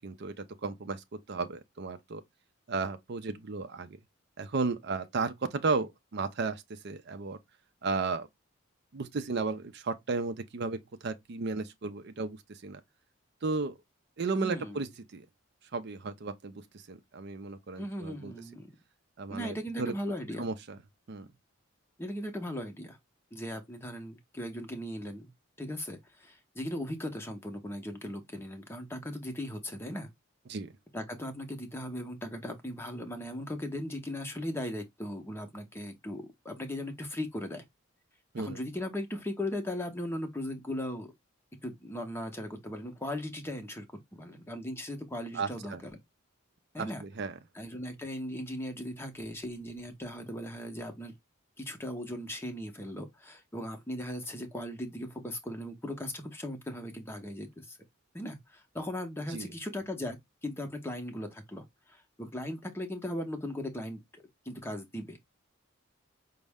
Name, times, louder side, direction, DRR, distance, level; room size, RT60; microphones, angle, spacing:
voice 1, 0.0-2.2 2.7-4.0 4.4-7.4 7.8-8.3 8.9-12.8 13.4-13.7 14.2-15.3 15.7-18.3 19.2-19.9 20.4-20.8 21.1-21.3 30.5-30.7 38.3-38.6 45.3-45.8 46.8-47.3 59.3-59.5, right 4 dB, 55° right, 0.5 m, -34 dB
voice 2, 14.4-14.8 17.8-18.7 19.3-20.5 22.0-23.0 23.3-25.3 25.6-30.1 30.9-37.6 38.4-41.1 41.6-45.9 46.7-47.0 47.5-51.1 51.6-57.8 58.1-65.2, left 1 dB, 10° left, 0.7 m, -38 dB
5.3 x 2.0 x 3.4 m
head